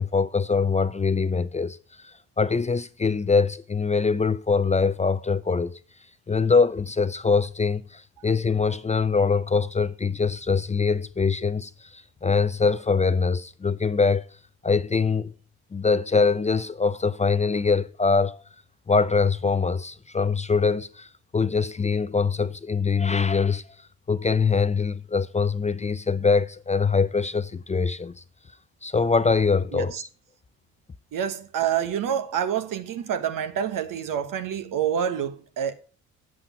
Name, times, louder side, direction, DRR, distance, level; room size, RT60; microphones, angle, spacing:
voice 1, 0.0-1.8 2.0-5.8 6.3-14.3 14.6-15.3 15.7-18.4 18.9-23.6 24.1-28.1 28.8-30.1, left 4 dB, 20° left, 0.5 m, -23 dB
voice 2, 29.7-30.0 31.1-35.7, right 9 dB, 60° right, 1.3 m, -27 dB
8.7 x 7.5 x 5.8 m
hypercardioid pair, 55°, 36 cm